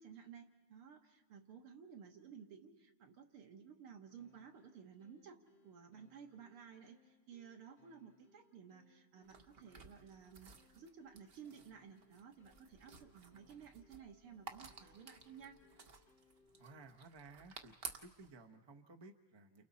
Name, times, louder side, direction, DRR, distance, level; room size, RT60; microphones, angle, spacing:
voice 1, 0.0-15.6, right 7 dB, 85° right, 4 dB, 2.4 m, -56 dB
sound 1, 4.2-17.0, left 5 dB, 45° left, 1.9 m, -72 dB
sound 2, 9.2-18.3, right 4 dB, 65° right, 0.5 m, -55 dB
voice 2, 16.6-17.7 18.0-19.7, right 3 dB, 25° right, 5 dB, 0.6 m, -57 dB
29.5 x 28.5 x 4.2 m, 1.2 s
omnidirectional pair, 2.4 m